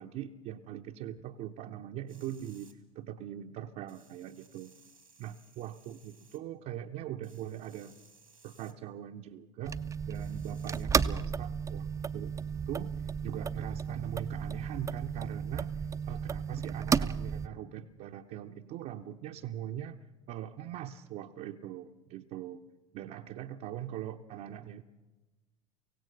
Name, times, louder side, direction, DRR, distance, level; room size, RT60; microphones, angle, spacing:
voice 1, 0.0-4.7 5.2-8.0 8.4-9.8 10.0-11.9 12.1-12.3 12.7-22.6 22.9-24.8, right 11 dB, 45° right, 2 dB, 0.8 m, -42 dB
sound 1, 2.1-2.7 3.9-6.4 7.2-8.7 10.1-10.9, right 4 dB, 90° right, 2.0 m, -61 dB
sound 2, 9.7-17.5, right 6 dB, 15° right, 0.6 m, -33 dB
24.0 x 17.0 x 6.4 m, 1.2 s
figure-of-eight pair, 70°, 17 cm